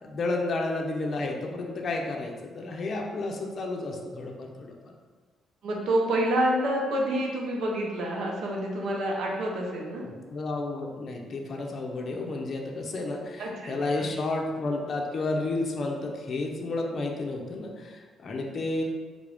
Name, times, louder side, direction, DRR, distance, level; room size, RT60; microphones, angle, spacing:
voice 1, 0.0-4.7 10.0-18.8, left 2 dB, 50° left, 1 dB, 0.5 m, -31 dB
voice 2, 5.6-10.1 13.4-14.1, right 1 dB, 75° right, -1 dB, 0.7 m, -28 dB
3.6 x 2.4 x 3.4 m, 1.5 s
cardioid pair, 90°, 0 cm